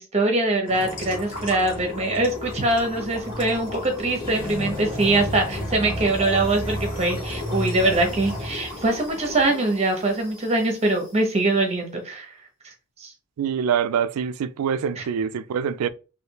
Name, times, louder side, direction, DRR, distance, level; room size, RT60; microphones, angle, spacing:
voice 1, 0.0-12.3 13.0-13.1 15.0-15.1, right 2 dB, 30° right, 0.9 m, -23 dB
sound 1, 0.7-11.1, left 1 dB, 40° left, 1.5 m, -33 dB
voice 2, 13.4-15.9, right 7 dB, 85° right, 0.3 m, -25 dB
3.3 x 2.7 x 2.9 m
head